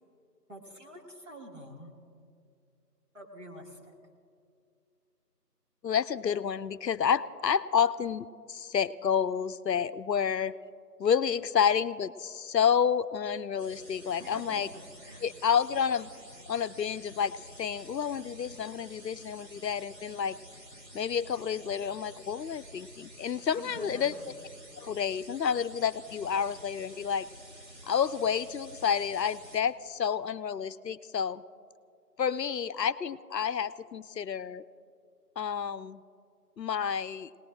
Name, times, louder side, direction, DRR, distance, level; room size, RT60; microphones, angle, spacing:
voice 1, 0.5-1.9 3.1-3.9 14.2-15.3 23.5-24.3, right 1 dB, 50° right, -1 dB, 2.2 m, -47 dB
voice 2, 5.8-10.5 11.0-14.7 15.2-16.1 16.5-20.4 20.9-24.1 24.8-27.3 27.8-31.4 32.2-34.6 35.4-36.0 36.6-37.3, left 7 dB, 80° left, 16 dB, 0.6 m, -29 dB
sound 1, 13.6-29.6, right 1 dB, 85° right, 2.9 m, -50 dB
30.0 x 18.5 x 2.5 m, 2.3 s
figure-of-eight pair, 175°, 49 cm